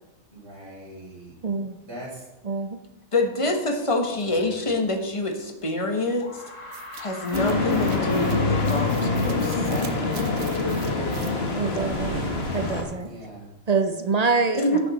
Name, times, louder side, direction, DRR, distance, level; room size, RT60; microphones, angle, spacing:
voice 1, 0.3-1.3 1.8-2.3 4.3-4.7 10.9-11.5 11.8-12.3 13.0-13.5, equal, 55° right, -4 dB, 3.9 m, -41 dB
voice 2, 1.4-1.8 2.4-2.8 11.6-12.2 12.5-13.1 13.7-14.8, right 4 dB, 40° right, 7 dB, 0.6 m, -25 dB
voice 3, 3.1-6.4 7.0-9.9 14.5-14.8, left 2 dB, 25° left, 4 dB, 1.2 m, -26 dB
sound 1, 5.4-5.5 6.2-11.4, left 2 dB, 70° left, 2.5 m, -41 dB
sound 2, 6.7-13.1, right 4 dB, 80° right, 1.3 m, -37 dB
sound 3, 7.3-12.8, left 3 dB, 50° left, 1.6 m, -25 dB
11.0 x 7.9 x 4.1 m, 1.0 s
omnidirectional pair, 1.4 m